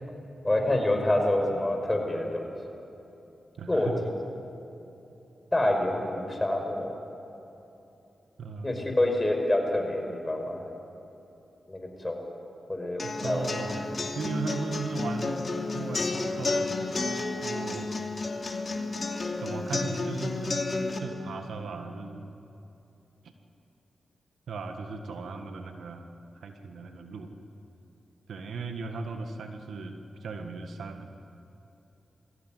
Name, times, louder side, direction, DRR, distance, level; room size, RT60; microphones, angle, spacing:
voice 1, 0.4-2.5 3.7-3.9 5.5-6.9 8.6-10.7 11.7-12.2 12.7-13.6, left 1 dB, 25° left, 3 dB, 5.4 m, -27 dB
voice 2, 3.6-4.0 8.4-8.9 13.0-13.9 14.1-15.4 15.7-16.7 17.4-17.9 19.4-20.7 21.0-22.3 24.5-26.1 26.4-27.3 28.3-31.1, right 3 dB, 80° right, 6 dB, 1.6 m, -37 dB
sound 1, 13.0-21.0, left 3 dB, 50° left, 2.8 m, -31 dB
21.0 x 15.5 x 9.4 m, 2.9 s
supercardioid pair, 45°, 0 cm